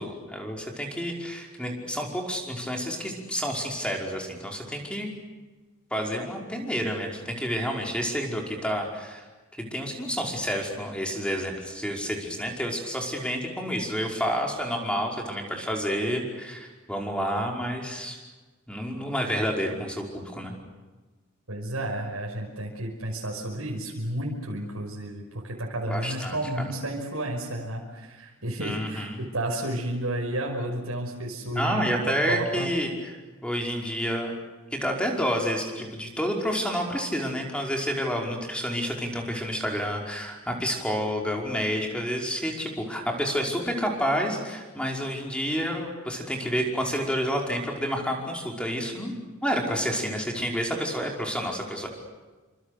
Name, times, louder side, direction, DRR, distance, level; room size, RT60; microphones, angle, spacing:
voice 1, 0.0-5.1 5.9-9.3 9.6-18.2 18.7-20.5 25.9-26.7 28.6-29.3 31.6-33.1 33.4-34.4 34.7-49.1 49.4-51.9, equal, 5° left, 1 dB, 5.3 m, -29 dB
voice 2, 21.5-32.7, right 1 dB, 75° right, -1 dB, 5.7 m, -32 dB
29.5 x 26.5 x 6.9 m, 1.3 s
head